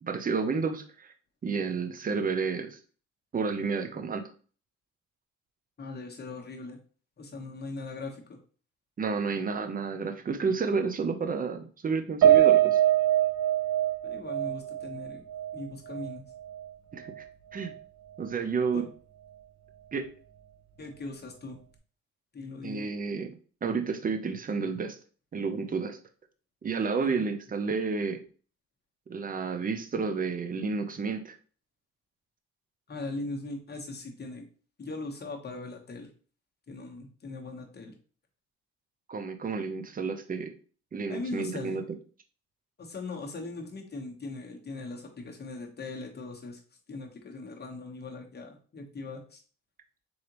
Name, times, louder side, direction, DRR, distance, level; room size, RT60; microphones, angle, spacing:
voice 1, 0.0-1.1 1.4-2.8 3.3-4.3 9.0-12.8 16.9-17.2 17.5-17.7 18.2-18.8 19.9-20.1 22.6-23.4 23.6-25.0 25.3-26.0 26.6-28.2 29.1-31.4 39.1-40.5 40.9-41.8, right 5 dB, 30° right, 7 dB, 0.6 m, -31 dB
voice 2, 5.8-6.8 7.2-8.4 14.0-15.2 15.5-16.2 18.7-18.9 20.8-21.6 22.3-22.9 27.0-27.3 32.9-34.4 34.8-36.1 36.7-37.9 41.1-41.8 42.8-46.6 46.9-49.4, left 3 dB, 35° left, 1 dB, 1.1 m, -40 dB
Piano, 12.2-16.7 17.1-17.2 17.6-17.7, right 12 dB, 70° right, 0.7 m, -24 dB
3.9 x 3.3 x 2.9 m, 0.41 s
cardioid pair, 90°, 30 cm